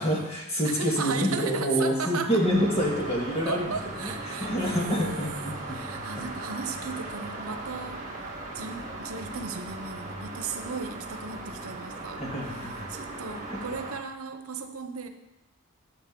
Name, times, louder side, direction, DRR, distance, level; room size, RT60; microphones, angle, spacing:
voice 1, 0.0-6.0 12.2-12.9 13.5-13.6, equal, 25° left, -2 dB, 2.1 m, -27 dB
voice 2, 0.6-2.4 3.4-15.1, right 5 dB, 80° right, 7 dB, 1.0 m, -36 dB
sound 1, 2.4-14.0, right 2 dB, 35° right, 1.8 m, -38 dB
11.5 x 7.3 x 5.4 m, 0.94 s
head